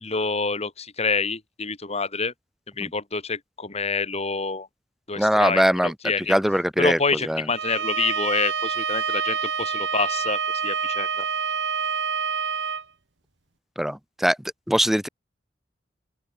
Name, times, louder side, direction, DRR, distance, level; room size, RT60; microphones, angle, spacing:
voice 1, 0.0-2.3 2.8-4.7 5.1-6.3 6.8-11.3, left 4 dB, 35° left, 2.8 m, -27 dB
voice 2, 5.2-5.9 6.3-7.4 13.8-14.4 14.7-15.1, equal, ahead, 1.0 m, -21 dB
Bowed string instrument, 7.5-12.8, right 6 dB, 80° right, 2.1 m, -27 dB
open air
head